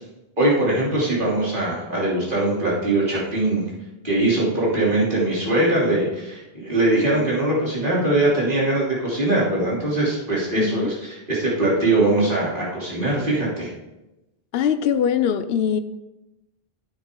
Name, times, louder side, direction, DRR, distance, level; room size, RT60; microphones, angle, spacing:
voice 1, 0.4-3.6 4.0-10.9 11.3-13.7, right 2 dB, 55° right, -6 dB, 3.4 m, -21 dB
voice 2, 10.6-11.0 14.5-15.8, left 8 dB, 80° left, 11 dB, 0.9 m, -22 dB
10.0 x 8.7 x 3.8 m, 0.97 s
omnidirectional pair, 1.0 m